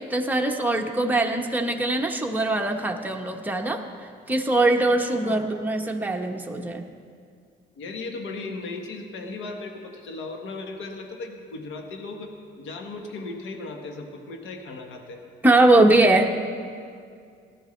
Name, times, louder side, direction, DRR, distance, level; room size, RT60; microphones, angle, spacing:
voice 1, 0.0-3.8 4.3-6.8 15.4-16.3, right 2 dB, 10° right, 2 dB, 1.1 m, -21 dB
voice 2, 4.8-5.5 7.7-15.2, left 3 dB, 85° left, 3 dB, 1.4 m, -37 dB
18.0 x 13.0 x 3.3 m, 2.2 s
cardioid pair, 90°, 20 cm